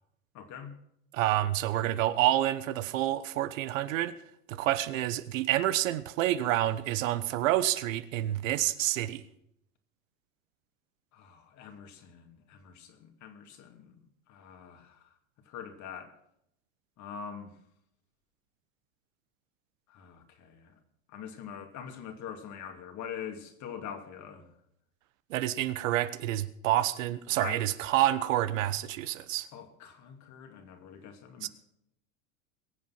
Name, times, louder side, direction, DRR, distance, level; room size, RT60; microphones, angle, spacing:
voice 1, 0.3-0.7 11.1-15.0 15.5-16.1 17.0-17.5 19.9-20.7 21.1-24.5 27.4-27.6 29.5-31.5, left 8 dB, 45° left, 2.6 m, -44 dB
voice 2, 1.1-4.1 4.5-9.2 25.3-29.5 31.4-31.5, right 13 dB, 75° right, 1.1 m, -28 dB
22.0 x 7.5 x 5.9 m
hypercardioid pair, 100°, 40 cm